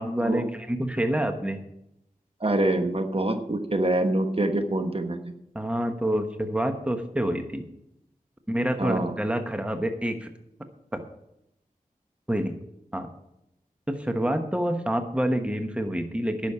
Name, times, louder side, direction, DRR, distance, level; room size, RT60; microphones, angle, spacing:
voice 1, 0.0-1.6 5.5-7.6 8.5-10.3 10.9-11.0 12.3-12.6 12.9-13.1 13.9-16.5, right 1 dB, 10° right, 7 dB, 1.2 m, -27 dB
voice 2, 2.4-5.3 8.8-9.1, right 1 dB, 40° right, 6 dB, 1.3 m, -25 dB
10.5 x 6.4 x 8.5 m, 0.82 s
cardioid pair, 40°, 15 cm